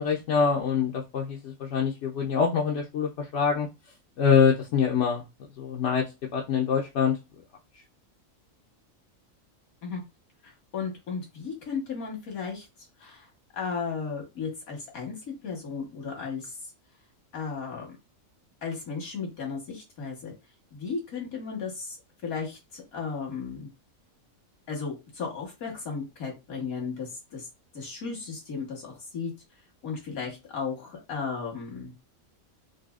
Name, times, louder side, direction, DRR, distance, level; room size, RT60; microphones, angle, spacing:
voice 1, 0.0-3.7 4.2-5.2 5.6-6.0 6.3-7.2, left 6 dB, 65° left, -1 dB, 0.8 m, -24 dB
voice 2, 10.4-12.7 13.0-13.3 13.5-15.2 15.4-16.6 17.3-17.9 18.6-20.3 20.7-22.0 22.2-23.7 24.7-27.5 27.7-29.3 29.8-31.9, left 5 dB, 85° left, 0 dB, 1.8 m, -35 dB
4.0 x 2.6 x 2.4 m, 0.25 s
omnidirectional pair, 1.5 m